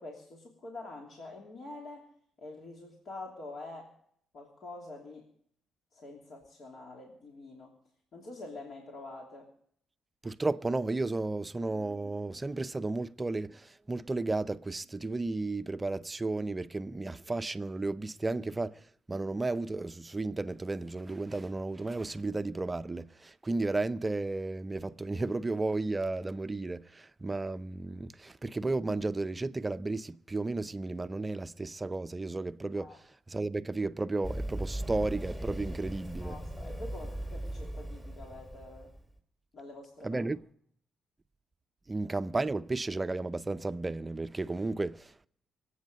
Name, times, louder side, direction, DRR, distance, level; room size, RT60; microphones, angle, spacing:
voice 1, 0.0-2.1 2.4-3.9 4.3-5.3 5.9-7.7 8.1-9.5 32.7-33.0 36.2-38.9 39.5-40.2, left 2 dB, 55° left, 3.0 m, -46 dB
voice 2, 10.2-36.4 40.0-40.4 41.9-45.3, right 2 dB, 20° right, 0.6 m, -33 dB
Run, 34.2-39.0, right 1 dB, 15° left, 2.8 m, -38 dB
25.5 x 8.5 x 5.2 m
cardioid pair, 90°, 0 cm